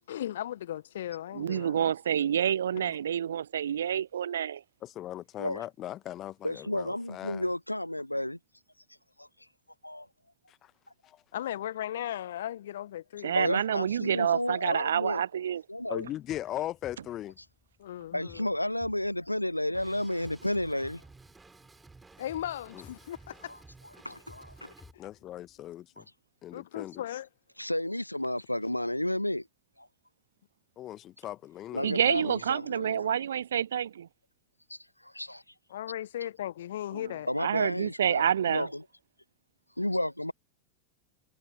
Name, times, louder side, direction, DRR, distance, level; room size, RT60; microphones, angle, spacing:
voice 1, 0.1-1.8 11.3-13.4 17.8-18.5 22.2-23.6 24.9-25.1 26.5-27.3 35.7-37.3, left 12 dB, 60° left, 0.7 m, -37 dB
voice 2, 1.3-4.6 13.2-15.6 31.8-34.1 36.9-38.7, right 9 dB, 65° right, 0.7 m, -28 dB
voice 3, 4.8-7.4 10.5-10.7 11.0-11.2 15.9-17.4 22.7-22.9 25.0-26.1 26.4-27.0 30.8-32.4, left 13 dB, 30° left, 1.2 m, -39 dB
voice 4, 6.4-8.4 9.2-9.3 9.8-10.1 13.4-15.2 15.7-16.1 18.1-21.0 23.5-23.6 24.0-24.7 27.6-29.5 29.8-29.9 31.7-33.1 34.7-35.4 37.3-38.8 39.8-40.3, left 1 dB, 85° left, 1.2 m, -32 dB
sound 1, 15.8-25.7, left 5 dB, 15° left, 6.9 m, -59 dB
Drum kit, 19.7-24.9, right 3 dB, 10° right, 3.9 m, -55 dB
figure-of-eight pair, 90°, 0 cm